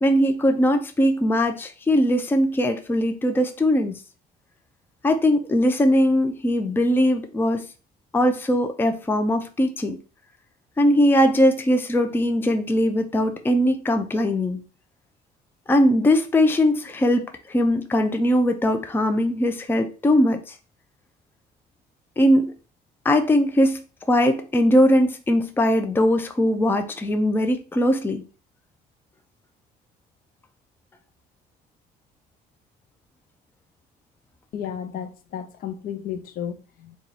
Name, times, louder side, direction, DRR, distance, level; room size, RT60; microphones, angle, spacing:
voice 1, 0.0-4.0 5.0-7.6 8.1-10.0 10.8-14.6 15.7-20.4 22.2-22.5 23.0-28.2, equal, 10° left, 0.5 m, -20 dB
voice 2, 34.5-37.0, left 9 dB, 60° left, 0.6 m, -33 dB
4.1 x 2.4 x 4.0 m
cardioid pair, 110°, 17 cm